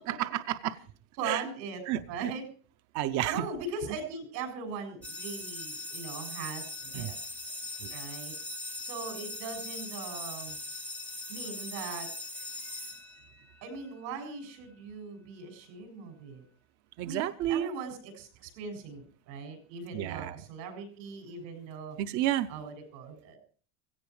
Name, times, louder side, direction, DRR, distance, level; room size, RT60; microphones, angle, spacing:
voice 1, 0.1-0.8 1.2-1.4 1.9-2.3 2.9-3.5 6.9-7.1 7.8-8.0 17.0-17.7 19.9-20.3 22.0-22.5, right 13 dB, 35° right, 10 dB, 0.6 m, -31 dB
voice 2, 1.2-1.8 2.1-2.4 3.3-7.2 7.9-8.3 8.8-10.6 11.3-12.1 13.6-16.4 17.0-22.0 22.5-23.4, right 4 dB, 85° right, 6 dB, 7.6 m, -40 dB
sound 1, 5.0-13.7, left 2 dB, 5° left, 0.7 m, -40 dB
17.0 x 16.0 x 4.8 m, 0.42 s
supercardioid pair, 155°, 50 cm